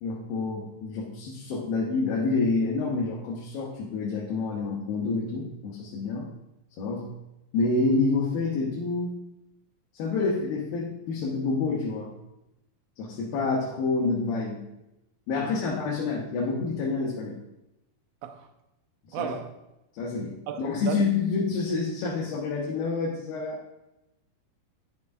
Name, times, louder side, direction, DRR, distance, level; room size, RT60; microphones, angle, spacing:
voice 1, 0.0-6.3 6.8-7.1 7.5-9.2 9.9-12.2 13.0-14.6 15.3-17.4 19.2-19.3 19.9-23.6, left 3 dB, 85° left, 2.8 m, -28 dB
voice 2, 15.4-15.7 18.2-18.5 19.1-19.5 20.5-21.0, right 8 dB, 85° right, 2.5 m, -35 dB
9.5 x 7.8 x 2.6 m
omnidirectional pair, 4.0 m